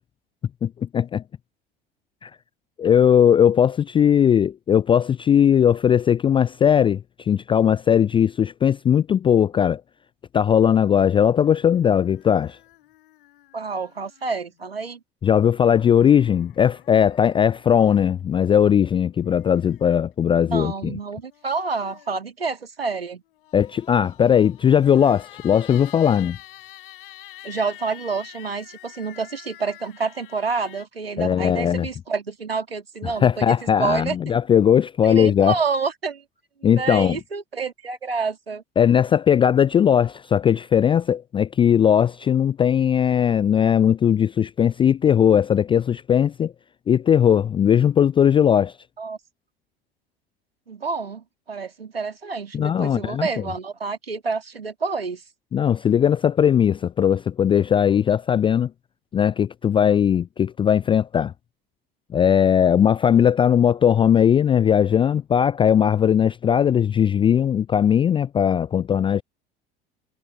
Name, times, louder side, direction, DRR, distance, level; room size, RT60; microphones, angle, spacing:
voice 1, 0.6-1.2 2.2-2.3 2.8-9.8 10.3-12.6 15.2-21.0 23.5-26.4 31.2-31.9 33.0-35.5 36.6-37.2 38.8-46.5 46.9-48.7 52.5-53.4 55.5-58.7 59.1-61.3 62.1-69.2, left 8 dB, 20° left, 0.4 m, -18 dB
sound 1, 10.9-14.7 15.9-18.2 19.0-20.0 21.1-22.3 23.3-30.8, left 16 dB, 65° left, 7.7 m, -47 dB
voice 2, 13.5-15.0 20.4-23.2 27.4-34.3 35.0-36.2 36.6-38.6 49.0-49.2 50.7-55.2, right 4 dB, 80° right, 2.8 m, -28 dB
figure-of-eight pair, 70°, 29 cm